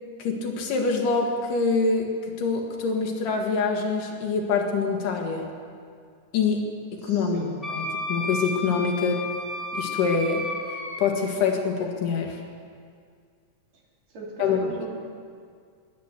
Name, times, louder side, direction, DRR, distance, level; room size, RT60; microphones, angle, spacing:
voice 1, 0.2-2.1 2.4-5.5 6.3-6.6 6.9-7.4 7.7-9.3 9.7-10.5 11.0-12.4 14.4-14.6, left 5 dB, 65° left, 1 dB, 3.1 m, -25 dB
voice 2, 7.0-7.6 14.1-14.9, right 3 dB, 55° right, -4 dB, 3.8 m, -39 dB
Wind instrument woodwind instrument, 7.6-11.0, left 1 dB, 20° left, 1.1 m, -32 dB
13.0 x 10.5 x 8.2 m, 2.1 s
omnidirectional pair, 4.1 m